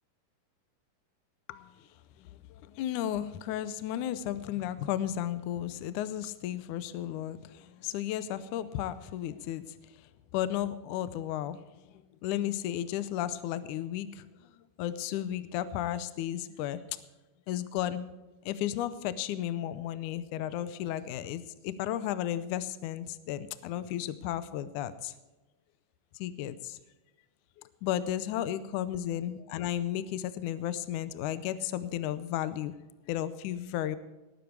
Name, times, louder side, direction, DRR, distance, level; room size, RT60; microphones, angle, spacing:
voice 1, 2.2-9.6 10.3-11.7 12.2-14.3 14.8-16.8 17.5-18.1 18.5-25.1 26.2-26.8 27.6-32.7 33.1-34.0, left 11 dB, 80° left, 1.9 m, -34 dB
19.5 x 10.5 x 4.7 m
omnidirectional pair, 4.2 m